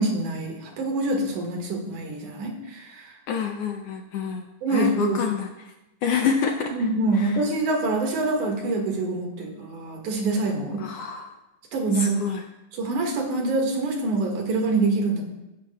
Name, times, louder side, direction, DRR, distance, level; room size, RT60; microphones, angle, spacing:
voice 1, 0.0-3.1 4.6-5.3 6.7-10.8 11.7-12.2 12.7-15.2, right 2 dB, 90° right, 1 dB, 3.2 m, -25 dB
voice 2, 3.3-4.4 4.7-5.5 6.0-6.8 7.1-7.4 10.8-11.3 11.9-12.4, left 6 dB, 75° left, 4 dB, 1.4 m, -27 dB
15.5 x 10.5 x 2.2 m, 0.95 s
omnidirectional pair, 3.4 m